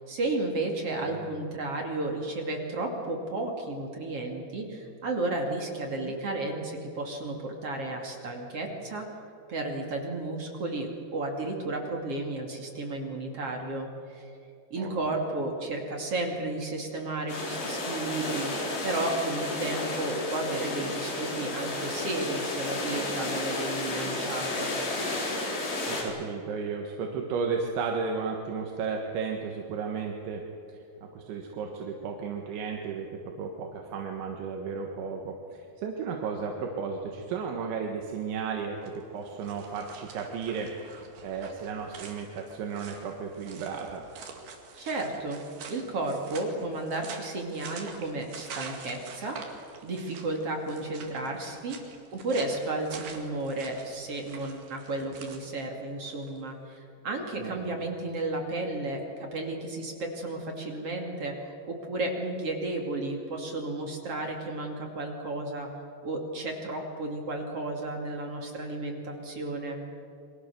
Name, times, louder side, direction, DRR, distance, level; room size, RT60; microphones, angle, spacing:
voice 1, 0.0-9.1 9.5-14.3 14.7-18.5 18.8-24.7 44.8-45.4 45.7-49.4 49.8-51.8 52.1-61.3 61.7-65.7 66.0-69.8, right 2 dB, 40° right, 1 dB, 2.7 m, -33 dB
voice 2, 0.9-1.3 6.0-6.2 14.8-15.2 25.9-30.4 30.7-30.8 31.1-40.7 41.2-44.1 57.4-57.6, right 5 dB, 80° right, 1 dB, 4.0 m, -34 dB
sound 1, 17.3-26.0, left 2 dB, 65° left, 6.6 m, -32 dB
sound 2, 38.7-56.4, right 5 dB, 60° right, 4.0 m, -47 dB
29.5 x 23.5 x 7.0 m, 2.7 s
omnidirectional pair, 5.2 m